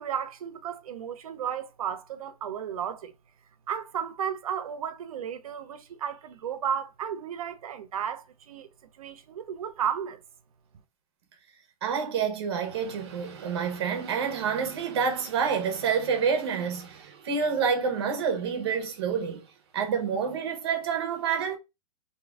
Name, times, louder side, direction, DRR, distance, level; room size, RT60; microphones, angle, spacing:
voice 1, 0.0-3.1 3.7-8.7 9.0-10.2, right 8 dB, 75° right, 0.6 m, -33 dB
voice 2, 11.8-19.5 19.7-21.6, right 6 dB, 45° right, 0.8 m, -28 dB
2.7 x 2.5 x 3.3 m
hypercardioid pair, 175°, 18 cm